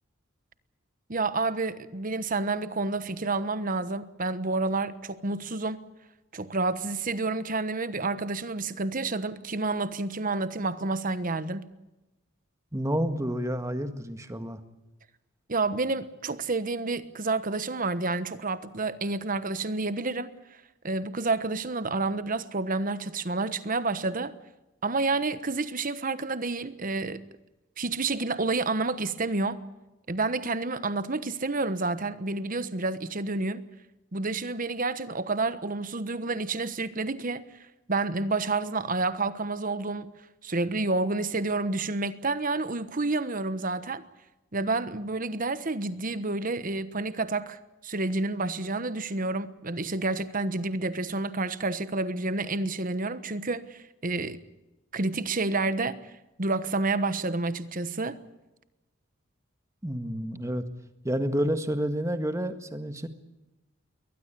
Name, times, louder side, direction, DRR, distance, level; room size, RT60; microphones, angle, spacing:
voice 1, 1.1-5.8 6.3-11.6 15.5-20.3 20.8-24.3 24.8-27.2 27.8-29.6 30.1-33.6 34.1-37.4 37.9-40.1 40.4-44.0 44.5-54.4 54.9-56.0 56.4-58.2, right 3 dB, 40° right, 1.2 m, -29 dB
voice 2, 12.7-14.6 59.8-60.6 61.0-63.1, equal, 15° right, 1.7 m, -29 dB
22.0 x 19.5 x 8.4 m
head